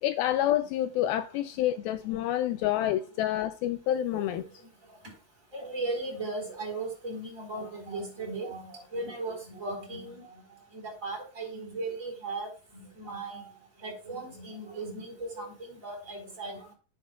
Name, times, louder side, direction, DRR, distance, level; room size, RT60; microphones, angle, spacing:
voice 1, 0.0-4.4, left 12 dB, 80° left, 2.4 m, -28 dB
voice 2, 4.1-4.4 5.5-10.4 10.7-12.5 13.0-13.4 13.8-16.7, right 2 dB, 20° right, 4.3 m, -37 dB
11.0 x 9.8 x 2.3 m
omnidirectional pair, 4.4 m